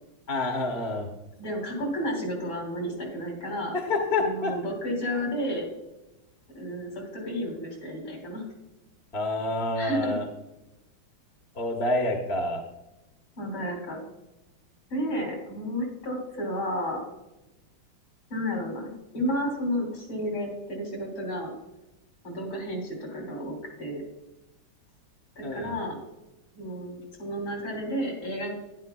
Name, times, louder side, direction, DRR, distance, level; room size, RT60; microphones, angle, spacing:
voice 1, 0.3-1.1 3.7-4.5 9.1-10.2 11.5-12.6 25.4-25.8, left 2 dB, 35° left, 2 dB, 1.3 m, -27 dB
voice 2, 1.4-3.7 4.2-5.7 6.5-8.5 9.8-10.1 13.4-14.0 14.9-17.0 18.3-21.5 22.2-24.0 25.4-26.0 26.5-28.5, equal, 70° left, 0 dB, 4.1 m, -32 dB
12.0 x 11.0 x 2.3 m, 0.95 s
omnidirectional pair, 2.3 m